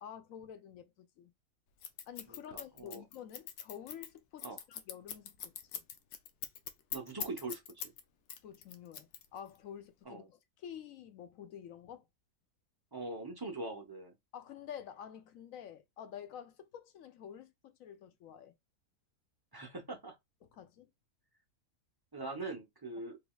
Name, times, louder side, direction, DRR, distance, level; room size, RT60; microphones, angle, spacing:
voice 1, 0.0-1.3 2.1-5.8 8.4-12.1 14.3-18.5 20.4-20.9, left 9 dB, 70° left, 1.0 m, -49 dB
Scissors, 1.8-8.0 8.3-9.6, left 9 dB, 90° left, 1.2 m, -42 dB
voice 2, 2.3-3.0 4.4-4.6 6.9-7.9 10.1-10.3 12.9-14.1 19.5-20.2 22.1-23.2, right 2 dB, 35° right, 0.4 m, -42 dB
3.9 x 3.1 x 2.3 m
omnidirectional pair, 1.6 m